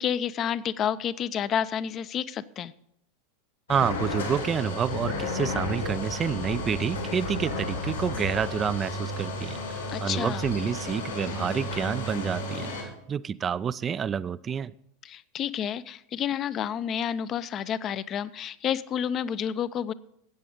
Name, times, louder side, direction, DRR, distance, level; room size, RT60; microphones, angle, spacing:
voice 1, 0.0-2.7 9.9-10.5 15.0-19.9, left 9 dB, 35° left, 15 dB, 0.5 m, -30 dB
sound 1, 3.7-12.8, left 2 dB, 80° left, 3.0 m, -32 dB
voice 2, 3.7-14.7, right 7 dB, 25° right, 16 dB, 0.3 m, -29 dB
13.5 x 8.4 x 5.0 m, 0.75 s
figure-of-eight pair, 85°, 0 cm